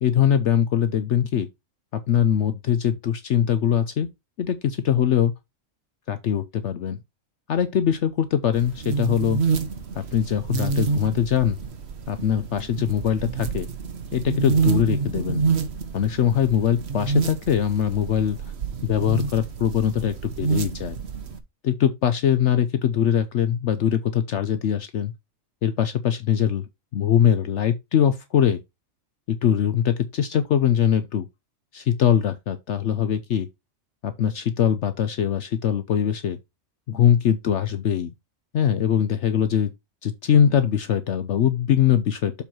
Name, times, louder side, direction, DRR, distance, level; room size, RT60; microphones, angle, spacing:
voice 1, 0.0-1.5 1.9-4.1 4.4-5.3 6.1-7.0 7.5-9.4 10.0-11.6 12.1-13.7 14.1-15.4 15.9-18.4 18.8-21.0 21.6-25.1 25.6-26.6 26.9-28.6 29.3-31.3 31.7-33.5 34.0-36.4 36.9-38.1 38.5-39.7 40.0-42.3, left 9 dB, 65° left, 0.9 m, -22 dB
sound 1, 8.5-21.4, right 5 dB, 55° right, 1.2 m, -28 dB
7.1 x 4.5 x 4.4 m
omnidirectional pair, 1.4 m